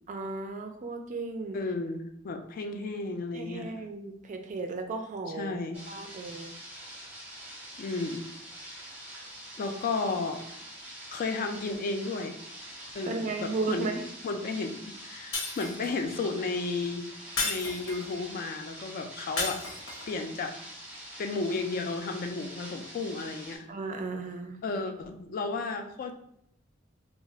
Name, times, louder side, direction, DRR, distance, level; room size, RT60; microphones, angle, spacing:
voice 1, 0.1-1.6 3.3-5.6 5.9-6.6 13.0-13.9 23.7-24.6, right 3 dB, 40° right, 5 dB, 0.3 m, -35 dB
voice 2, 1.5-3.7 5.4-5.8 7.8-8.2 9.6-10.4 11.1-12.4 12.9-13.9 14.2-17.1 17.4-19.6 20.1-20.5 21.2-23.7 24.6-26.1, left 3 dB, 45° left, 5 dB, 0.3 m, -33 dB
sound 1, 5.7-23.6, right 1 dB, 5° right, 0.7 m, -45 dB
Shatter, 15.3-16.1 17.4-18.2 19.4-20.1, left 3 dB, 80° left, 1.0 m, -33 dB
2.3 x 2.1 x 3.7 m, 0.75 s
head